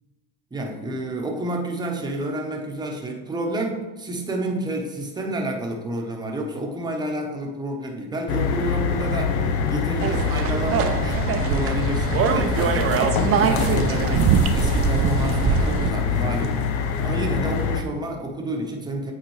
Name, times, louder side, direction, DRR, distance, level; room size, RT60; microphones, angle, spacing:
voice 1, 0.5-14.2 14.5-19.1, right 1 dB, 10° right, 0 dB, 0.9 m, -29 dB
sound 1, 8.3-17.8, left 6 dB, 85° left, 0.7 m, -25 dB
sound 2, 10.0-15.9, right 7 dB, 35° right, 0.5 m, -23 dB
8.1 x 4.0 x 3.1 m, 1.2 s
supercardioid pair, 120°, 40 cm